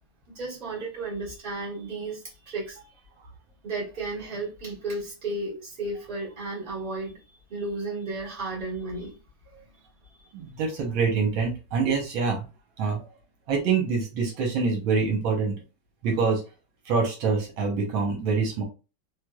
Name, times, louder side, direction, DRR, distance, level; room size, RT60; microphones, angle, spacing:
voice 1, 0.3-2.8 3.6-7.1 7.5-9.1, right 2 dB, 25° right, 1.6 m, -33 dB
voice 2, 10.3-12.4 12.8-13.1 13.5-15.5 16.0-16.4 16.9-18.6, right 5 dB, 75° right, 1.7 m, -25 dB
3.7 x 3.0 x 2.2 m
omnidirectional pair, 2.3 m